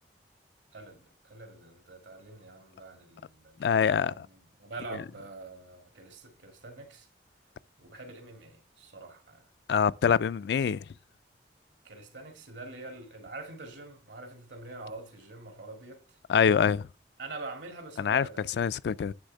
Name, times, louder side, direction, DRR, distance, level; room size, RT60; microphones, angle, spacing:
voice 1, 0.7-7.1 7.8-9.5 11.8-16.2 17.2-18.5, right 3 dB, 85° right, 2.2 m, -45 dB
voice 2, 3.6-4.1 9.7-10.9 16.3-16.9 18.0-18.3 18.6-19.1, left 7 dB, 65° left, 0.3 m, -24 dB
9.8 x 3.5 x 6.5 m
head